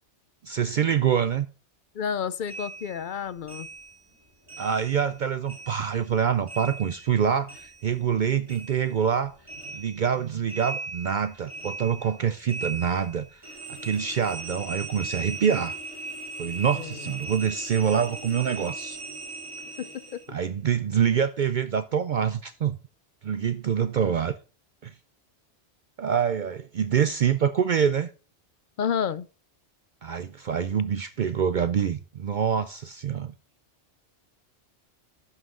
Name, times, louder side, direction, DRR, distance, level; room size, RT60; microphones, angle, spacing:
voice 1, 0.4-1.5 4.6-9.4 9.7-13.4 13.7-15.8 16.4-19.0 20.3-22.8 23.2-24.3 24.8-24.9 26.0-28.1 30.0-33.3, right 7 dB, 55° right, 0.5 m, -26 dB
voice 2, 1.9-3.7 16.7-17.0 19.8-20.4 28.8-29.3, left 7 dB, 60° left, 0.6 m, -30 dB
sound 1, 2.5-5.2 5.5-8.2 8.5-20.3, right 3 dB, 25° right, 3.5 m, -39 dB
11.0 x 5.7 x 3.7 m
omnidirectional pair, 1.2 m